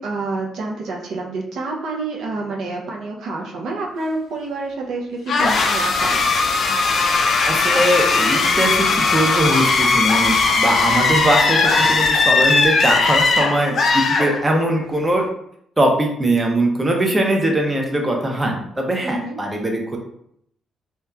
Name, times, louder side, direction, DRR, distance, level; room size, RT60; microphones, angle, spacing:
voice 1, 0.0-6.3 19.0-19.4, right 3 dB, 75° right, -1 dB, 0.5 m, -28 dB
sound 1, 5.3-14.8, left 4 dB, 60° left, 0.3 m, -18 dB
voice 2, 7.5-15.2 15.8-20.0, right 1 dB, 20° right, 1 dB, 0.5 m, -21 dB
2.7 x 2.2 x 2.3 m, 0.71 s
cardioid pair, 90°, 0 cm